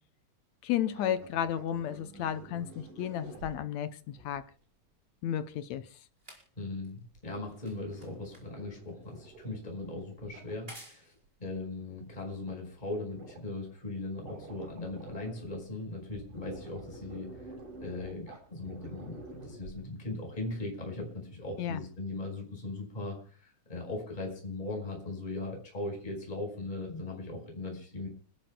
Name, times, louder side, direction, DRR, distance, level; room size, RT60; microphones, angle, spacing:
voice 1, 0.6-4.4 5.2-6.0 21.6-21.8, left 10 dB, 70° left, 1.8 m, -33 dB
sound 1, 0.8-4.4 7.0-10.6 11.5-11.6 11.8-12.2 12.5-12.6 12.8-13.7 14.0-15.7 16.0-20.2 20.5-20.6, right 2 dB, 75° right, 7.0 m, -50 dB
sound 2, 4.5-13.0 13.8-13.9, right 1 dB, 15° right, 4.9 m, -57 dB
voice 2, 6.6-11.1 11.4-17.5 17.8-28.1, left 2 dB, 10° left, 5.1 m, -39 dB
30.0 x 12.0 x 2.3 m
omnidirectional pair, 3.8 m